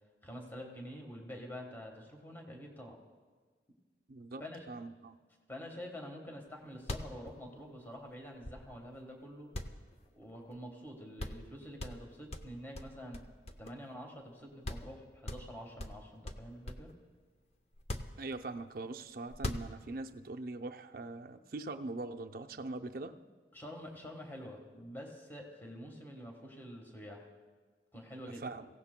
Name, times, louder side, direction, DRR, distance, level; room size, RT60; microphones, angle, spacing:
voice 1, 0.2-3.0 4.4-4.7 5.5-9.5 10.1-13.2 13.6-16.9 23.5-27.3 27.9-28.5, equal, 10° left, 1 dB, 1.3 m, -47 dB
voice 2, 4.1-5.2 18.2-23.1 28.4-28.7, right 2 dB, 55° right, 6 dB, 0.5 m, -42 dB
sound 1, 6.5-6.6 6.8-9.0 9.5-10.6 10.9-11.0 11.2-11.5 11.8-13.9 14.3-14.4 14.6-14.9 15.2-17.0 17.7-18.7 19.3-20.1, left 1 dB, 35° left, 0.6 m, -42 dB
23.5 x 16.0 x 2.2 m, 1.4 s
head